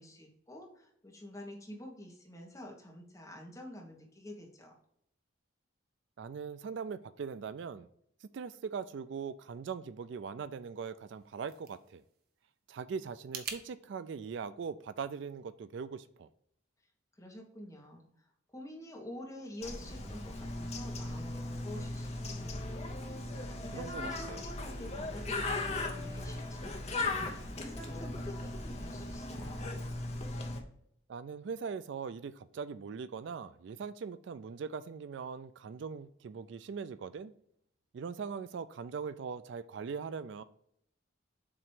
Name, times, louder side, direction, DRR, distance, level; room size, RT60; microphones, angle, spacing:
voice 1, 0.0-4.7 17.2-22.7 23.0-29.7, left 1 dB, 15° left, 0 dB, 1.4 m, -48 dB
voice 2, 6.2-7.9 8.3-12.0 12.7-16.3 23.7-24.4 31.1-37.3 37.9-40.4, right 6 dB, 65° right, 14 dB, 0.3 m, -41 dB
sound 1, 11.0-13.6, right 6 dB, 50° right, 0.8 m, -46 dB
Bird, 19.6-30.6, left 2 dB, 30° left, 0.8 m, -38 dB
7.5 x 3.0 x 4.7 m, 0.70 s
head